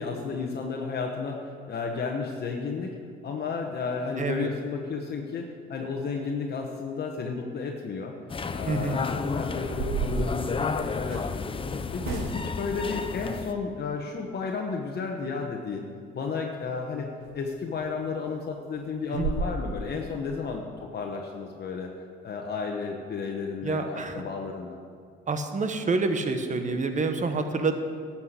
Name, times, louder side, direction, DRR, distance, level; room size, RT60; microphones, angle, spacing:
voice 1, 0.0-2.9 3.2-8.2 8.5-11.5 11.9-15.9 16.1-17.1 17.3-21.9 22.2-24.8, left 5 dB, 55° left, 1 dB, 1.1 m, -33 dB
voice 2, 4.2-4.5 8.7-9.0 19.1-19.3 23.6-24.2 25.3-27.7, right 3 dB, 40° right, 7 dB, 1.2 m, -27 dB
sound 1, 8.3-13.5, left 4 dB, 25° left, 0.6 m, -32 dB
sound 2, 9.6-11.3 12.0-12.7 17.2-17.3 17.8-17.9 18.3-18.4 18.7-18.8 19.1-19.5, right 5 dB, 90° right, 0.9 m, -33 dB
12.0 x 5.9 x 8.1 m, 2.1 s
cardioid pair, 90°, 20 cm